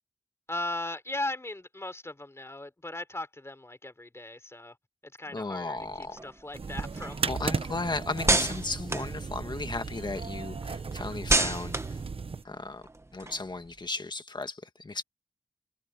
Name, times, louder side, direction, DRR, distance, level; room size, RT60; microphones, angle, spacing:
voice 1, 0.5-4.8 5.2-7.3, left 2 dB, 25° left, 3.8 m, -38 dB
voice 2, 5.3-6.2 7.2-12.0 12.5-12.8 13.1-15.0, left 3 dB, 40° left, 1.7 m, -35 dB
sound 1, 5.8-9.9 10.3-13.8, right 2 dB, 25° right, 1.5 m, -32 dB
sound 2, 6.5-12.4, right 4 dB, 55° right, 1.0 m, -36 dB
wide cardioid pair, 80°, 11 cm